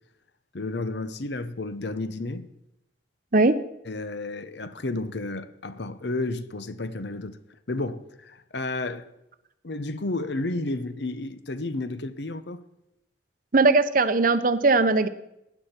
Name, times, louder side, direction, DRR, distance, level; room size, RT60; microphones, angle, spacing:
voice 1, 0.5-2.5 3.9-7.4 7.7-9.1 9.6-12.6, left 2 dB, 65° left, 0.8 m, -32 dB
voice 2, 13.5-15.1, right 3 dB, 45° right, 0.7 m, -19 dB
16.0 x 11.0 x 4.4 m
head